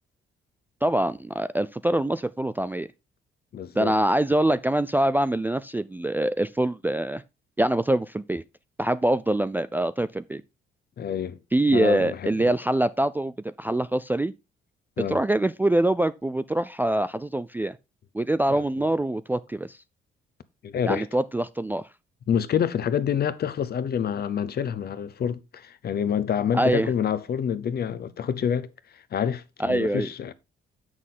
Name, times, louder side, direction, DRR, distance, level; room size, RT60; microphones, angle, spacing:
voice 1, 0.8-2.9 3.8-7.2 7.6-8.4 8.8-10.4 11.5-14.3 15.1-17.8 18.1-19.8 20.8-21.9 26.5-26.9 29.6-30.1, right 1 dB, 10° right, 0.3 m, -24 dB
voice 2, 3.5-4.0 11.0-11.4 11.7-12.5 15.0-15.2 18.5-18.9 20.6-21.1 22.3-30.3, left 8 dB, 50° left, 0.8 m, -27 dB
7.4 x 6.2 x 3.8 m
cardioid pair, 90°, 20 cm